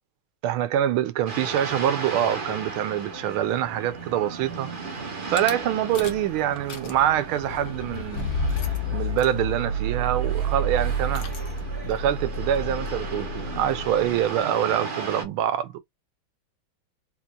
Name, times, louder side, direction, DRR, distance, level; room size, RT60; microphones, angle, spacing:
voice 1, 0.4-4.7 5.3-8.3 8.9-11.3 11.8-15.8, right 11 dB, 90° right, 1.5 m, -25 dB
sound 1, 1.3-15.2, right 3 dB, 40° right, 0.7 m, -36 dB
Rattle / Car / Engine starting, 5.4-5.5 5.9-6.3 6.6-14.3, right 1 dB, 60° left, 0.8 m, -30 dB
4.1 x 2.9 x 2.3 m
omnidirectional pair, 2.2 m